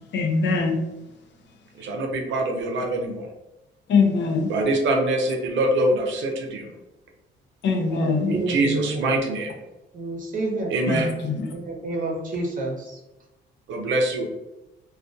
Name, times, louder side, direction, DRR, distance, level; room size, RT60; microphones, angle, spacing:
voice 1, 0.1-0.8 3.9-4.5 7.6-8.3 10.9-11.5, left 4 dB, 65° left, 4 dB, 0.5 m, -22 dB
voice 2, 1.8-3.3 4.5-6.7 8.3-9.5 10.7-11.1 13.7-14.3, right 2 dB, 75° right, 3 dB, 0.5 m, -24 dB
voice 3, 7.9-9.2 9.9-10.7 11.5-13.0, right 2 dB, 40° right, 0 dB, 0.8 m, -29 dB
2.2 x 2.2 x 2.5 m, 0.95 s
cardioid pair, 90°, 20 cm